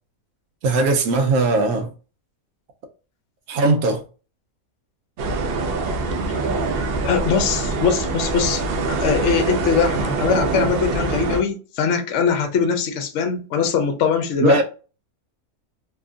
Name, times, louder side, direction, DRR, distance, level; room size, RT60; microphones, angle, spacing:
voice 1, 0.6-1.9 3.5-4.0 14.4-14.6, right 3 dB, 80° right, 1.1 m, -19 dB
sound 1, 5.2-11.4, right 3 dB, 65° right, 0.6 m, -24 dB
voice 2, 7.0-14.6, left 6 dB, 65° left, 0.9 m, -21 dB
2.9 x 2.4 x 2.4 m
omnidirectional pair, 1.5 m